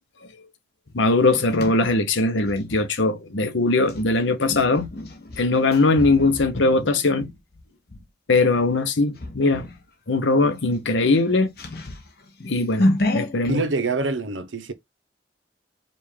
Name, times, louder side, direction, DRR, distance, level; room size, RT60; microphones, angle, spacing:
voice 1, 0.9-4.9 5.4-7.3 8.3-9.7 10.1-11.5 12.4-13.6, left 3 dB, 90° left, 0.9 m, -20 dB
sound 1, 0.9-2.8 3.8-8.0 8.5-8.8 9.1-9.8 10.1-10.2 10.6-13.5, left 1 dB, 55° left, 1.1 m, -30 dB
voice 2, 13.5-14.7, right 3 dB, 90° right, 0.8 m, -25 dB
5.3 x 2.5 x 3.4 m
head